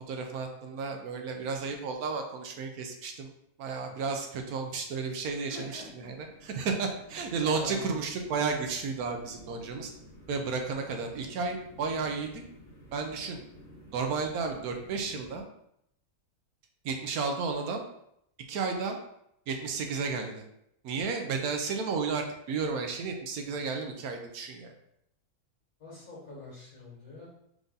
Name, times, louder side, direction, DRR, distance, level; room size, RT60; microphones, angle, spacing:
voice 1, 0.1-3.3 3.6-9.9 10.3-12.4 12.9-13.4 13.9-15.4 16.8-17.8 18.5-19.0 19.5-20.4 20.8-24.7, right 4 dB, 80° right, 4 dB, 1.1 m, -33 dB
sound 1, 5.2-15.4, left 1 dB, 45° left, 1.1 m, -53 dB
voice 2, 5.5-6.1 7.4-7.9 25.8-27.3, left 2 dB, 65° left, -6 dB, 2.2 m, -44 dB
4.6 x 2.6 x 3.9 m, 0.75 s
omnidirectional pair, 1.6 m